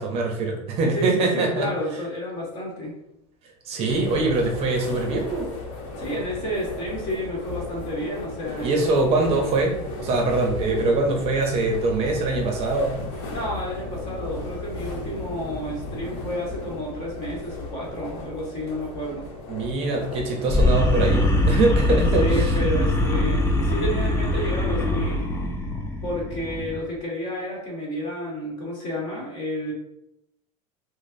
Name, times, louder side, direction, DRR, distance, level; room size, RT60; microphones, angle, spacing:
voice 1, 0.0-1.7 3.6-5.5 8.6-12.9 19.5-22.6, right 3 dB, 35° right, 2 dB, 0.6 m, -23 dB
voice 2, 0.9-2.9 6.0-9.1 13.3-19.3 22.2-25.2 26.0-29.7, equal, 40° left, -2 dB, 1.3 m, -31 dB
sound 1, 3.9-21.8, left 2 dB, 65° left, 0.9 m, -35 dB
sound 2, 20.5-26.8, left 1 dB, 15° left, 0.4 m, -22 dB
4.9 x 2.0 x 2.6 m, 0.82 s
supercardioid pair, 155°, 17 cm